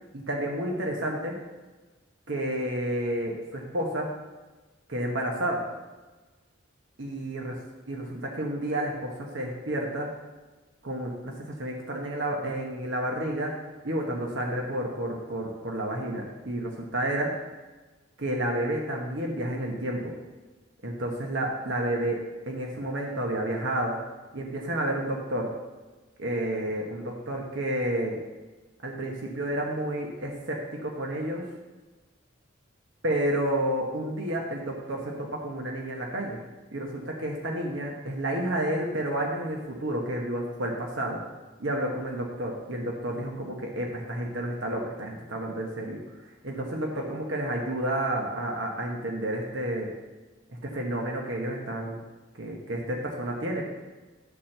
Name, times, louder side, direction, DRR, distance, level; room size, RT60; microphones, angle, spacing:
voice 1, 0.1-1.4 2.3-4.1 4.9-5.6 7.0-7.5 7.9-10.1 10.8-11.3 11.6-13.5 13.8-17.3 18.2-20.1 20.8-22.2 22.5-23.9 24.3-25.5 26.2-28.2 28.8-31.4 33.0-36.4 36.7-41.2 41.6-46.0 46.4-49.9 50.7-52.0 52.3-53.7, right 1 dB, 70° right, 0 dB, 1.2 m, -30 dB
11.0 x 4.4 x 6.6 m, 1.2 s
head